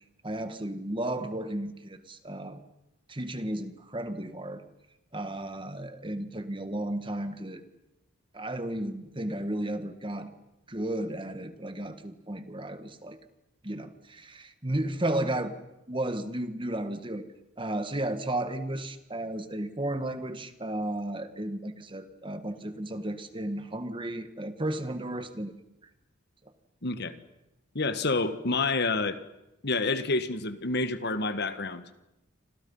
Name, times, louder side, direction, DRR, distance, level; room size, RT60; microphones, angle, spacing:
voice 1, 0.2-2.6 3.1-4.6 5.1-7.6 8.3-10.3 10.7-13.2 13.6-15.5 15.9-17.2 17.6-25.5, right 1 dB, 25° right, 9 dB, 1.7 m, -33 dB
voice 2, 26.8-27.1 27.7-29.2 29.6-31.9, left 3 dB, 50° left, 11 dB, 1.6 m, -28 dB
29.5 x 26.0 x 5.6 m, 0.90 s
head